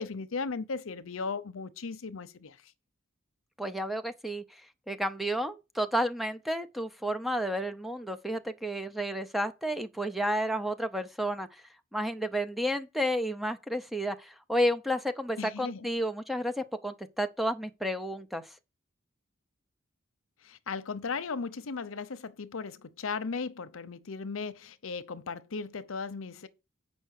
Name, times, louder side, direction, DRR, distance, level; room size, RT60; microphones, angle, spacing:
voice 1, 0.0-2.7 15.4-15.9 20.4-26.5, left 4 dB, 80° left, 0.7 m, -36 dB
voice 2, 3.6-4.6 4.9-11.6 11.9-18.5, equal, ahead, 0.7 m, -31 dB
7.8 x 5.4 x 6.4 m
head